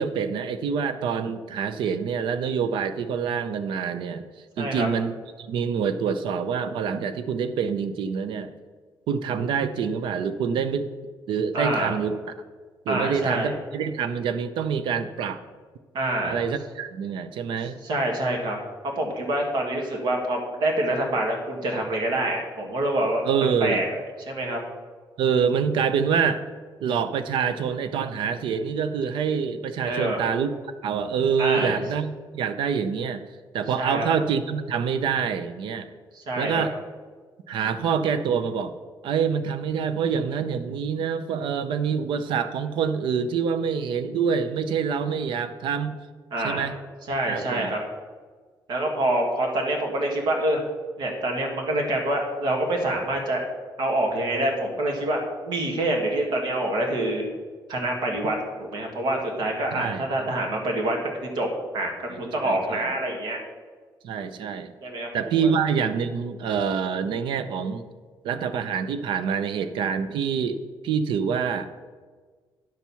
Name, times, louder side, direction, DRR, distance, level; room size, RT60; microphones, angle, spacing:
voice 1, 0.0-4.2 4.6-8.5 9.1-10.9 11.3-12.2 12.9-15.4 16.2-17.8 23.3-23.8 25.2-26.4 26.8-30.5 30.8-33.3 33.5-35.9 36.4-36.7 37.5-38.7 39.0-45.9 46.4-46.7 47.3-47.7 59.7-60.3 62.4-62.6 64.0-64.7 65.1-67.9 68.2-71.7, right 6 dB, 75° right, 11 dB, 0.6 m, -26 dB
voice 2, 4.6-4.9 11.5-11.9 12.9-13.6 15.9-16.3 17.8-18.6 19.0-23.2 23.6-23.9 24.2-24.6 29.8-30.2 31.4-31.8 33.8-34.1 36.1-36.6 46.3-46.7 47.1-47.8 48.7-50.6 51.0-53.5 53.8-57.3 57.7-61.5 61.7-63.4 64.8-65.1 65.4-65.5, right 1 dB, 60° right, 1 dB, 1.9 m, -26 dB
10.5 x 4.5 x 6.9 m, 1.5 s
cardioid pair, 165°, 8 cm